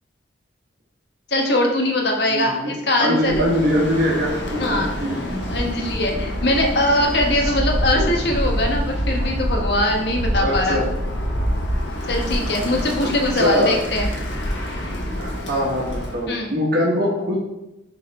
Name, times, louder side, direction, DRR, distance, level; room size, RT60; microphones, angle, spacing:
voice 1, 1.3-3.4 4.6-4.9 5.5-10.8 12.1-14.1 16.3-16.5, left 1 dB, 60° left, 1 dB, 1.2 m, -21 dB
voice 2, 2.3-2.7 3.0-5.2 7.4-7.5 7.9-8.0 10.4-10.9 13.3-13.8 15.2-17.4, equal, 55° right, -4 dB, 1.4 m, -22 dB
Bird, 3.2-16.3, equal, 75° left, 1.4 m, -26 dB
6.4 x 4.0 x 4.2 m, 0.96 s
head